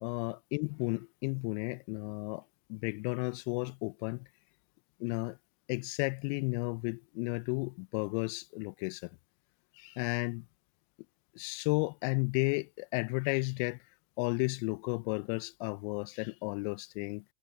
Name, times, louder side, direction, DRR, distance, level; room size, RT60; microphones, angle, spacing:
voice 1, 0.0-2.4 2.7-4.3 5.0-5.4 5.7-9.1 9.8-10.4 11.3-13.8 14.2-17.2, left 35 dB, 35° left, 1.1 m, -33 dB
figure-of-eight pair, 105°, 44 cm